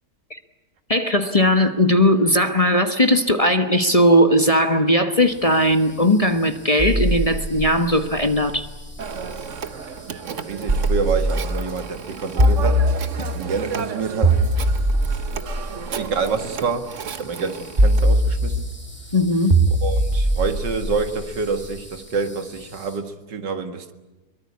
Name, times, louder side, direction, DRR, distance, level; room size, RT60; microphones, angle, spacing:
voice 1, 0.9-8.7 19.1-19.5, left 1 dB, 25° left, 1.1 m, -18 dB
sound 1, 5.2-23.0, equal, 5° left, 4.8 m, -46 dB
sound 2, 6.8-9.6 10.7-11.7 12.4-13.5 14.2-16.5 17.8-18.9 19.5-21.7, right 1 dB, 25° right, 2.6 m, -21 dB
Telephone, 9.0-18.1, right 7 dB, 50° right, 1.3 m, -34 dB
voice 2, 10.0-12.8 13.3-14.4 16.0-18.7 19.8-23.9, right 4 dB, 90° right, 2.5 m, -27 dB
23.0 x 23.0 x 9.6 m
omnidirectional pair, 1.8 m